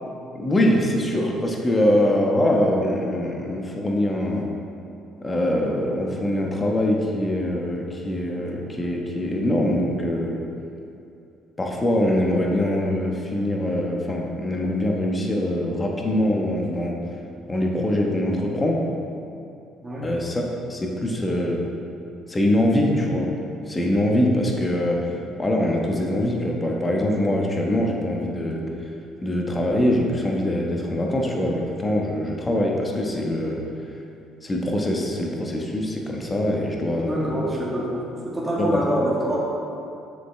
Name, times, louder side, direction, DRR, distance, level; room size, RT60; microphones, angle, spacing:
voice 1, 0.0-4.5 5.2-10.4 11.6-17.0 17.5-18.9 20.0-20.4 20.7-21.7 22.3-23.3 23.7-25.1 25.4-28.7 29.2-33.6 34.4-37.4 38.6-38.8, left 1 dB, 20° left, 0 dB, 1.1 m, -23 dB
voice 2, 37.0-39.4, equal, 15° right, -6 dB, 1.6 m, -25 dB
7.0 x 6.8 x 3.3 m, 2.6 s
cardioid pair, 90°, 0 cm